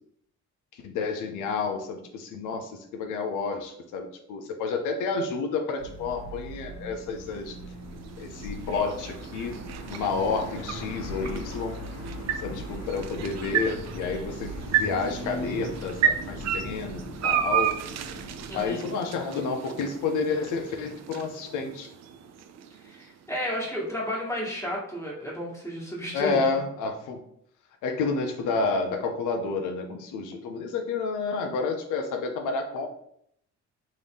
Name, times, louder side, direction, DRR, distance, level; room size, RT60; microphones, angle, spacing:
voice 1, 0.8-7.6 8.2-9.5 9.9-11.8 12.4-14.5 14.8-17.7 18.5-21.9 26.1-27.2 27.8-32.9, left 4 dB, 85° left, 4 dB, 0.6 m, -30 dB
sound 1, 5.8-18.7, left 1 dB, 60° left, 1.1 m, -40 dB
sound 2, 7.2-23.4, right 8 dB, 60° right, 0.4 m, -33 dB
voice 2, 18.5-18.9 22.8-26.4, left 1 dB, 10° left, -5 dB, 1.4 m, -32 dB
3.6 x 2.6 x 3.4 m, 0.70 s
cardioid pair, 90°, 30 cm